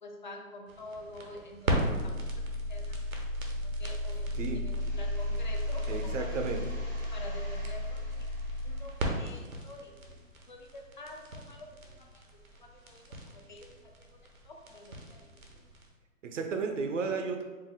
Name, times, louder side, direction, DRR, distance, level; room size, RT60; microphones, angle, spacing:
voice 1, 0.0-3.0 3.6-6.6 7.1-8.3 8.6-9.9 10.5-11.7 12.0-12.2 12.5-13.1 13.3-15.3, left 2 dB, 40° left, 2 dB, 0.4 m, -48 dB
sound 1, 0.7-15.9, equal, 85° right, 1.0 m, -34 dB
sound 2, 4.7-10.2, equal, 15° right, 0.6 m, -54 dB
voice 2, 5.9-6.6 16.2-17.4, right 4 dB, 65° right, 5 dB, 0.7 m, -33 dB
4.7 x 2.1 x 3.5 m, 1.3 s
hypercardioid pair, 145°, 40 cm